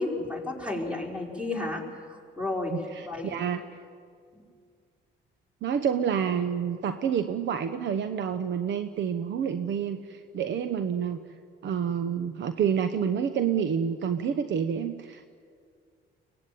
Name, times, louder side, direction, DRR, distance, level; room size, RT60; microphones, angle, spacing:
voice 1, 0.0-3.3, left 2 dB, 5° right, 0 dB, 4.8 m, -32 dB
voice 2, 2.7-3.8 5.6-11.2 11.6-15.3, right 7 dB, 65° right, 10 dB, 1.0 m, -28 dB
23.5 x 19.0 x 9.3 m, 2.2 s
cardioid pair, 90°, 20 cm